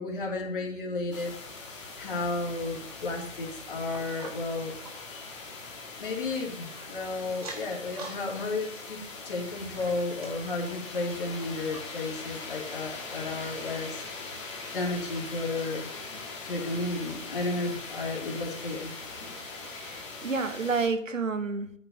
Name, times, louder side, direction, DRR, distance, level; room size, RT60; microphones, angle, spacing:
voice 1, 0.0-1.3 2.0-4.7 6.0-9.0 9.2-14.0 14.7-15.9 16.4-18.9, left 3 dB, 40° left, -1 dB, 2.5 m, -33 dB
sound 1, 1.1-20.9, left 3 dB, 20° left, 1.6 m, -41 dB
sound 2, 3.9-6.9 7.3-8.2 8.5-10.9 11.4-11.5 11.7-11.8 12.5-12.6, right 4 dB, 30° right, 1.8 m, -47 dB
voice 2, 19.6-21.7, right 4 dB, 70° right, 11 dB, 1.0 m, -30 dB
9.6 x 9.2 x 2.7 m, 0.70 s
figure-of-eight pair, 150°, 39 cm